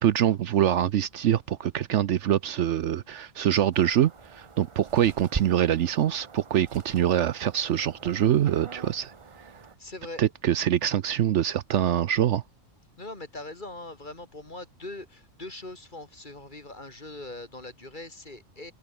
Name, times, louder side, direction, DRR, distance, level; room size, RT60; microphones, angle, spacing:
voice 1, 0.0-9.1 10.2-12.4, right 11 dB, 70° right, 0.9 m, -24 dB
sound 1, 3.7-9.7, right 5 dB, 35° right, 0.6 m, -42 dB
voice 2, 9.8-10.2 13.0-18.7, left 2 dB, 35° left, 3.5 m, -41 dB
omnidirectional pair, 1.4 m